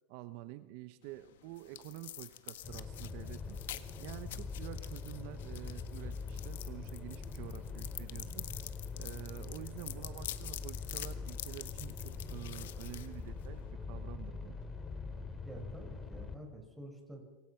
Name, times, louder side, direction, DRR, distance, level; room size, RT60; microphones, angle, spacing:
voice 1, 0.1-3.6 4.0-8.4 8.9-13.6 13.9-14.6, right 16 dB, 55° right, 12 dB, 1.0 m, -48 dB
sound 1, 1.0-13.7, left 13 dB, 85° left, 1.7 m, -47 dB
sound 2, 2.6-16.3, left 4 dB, 15° left, 3.0 m, -43 dB
voice 2, 15.5-17.2, right 1 dB, 5° right, 2 dB, 5.8 m, -49 dB
27.0 x 24.0 x 5.9 m, 1.1 s
supercardioid pair, 145°, 0 cm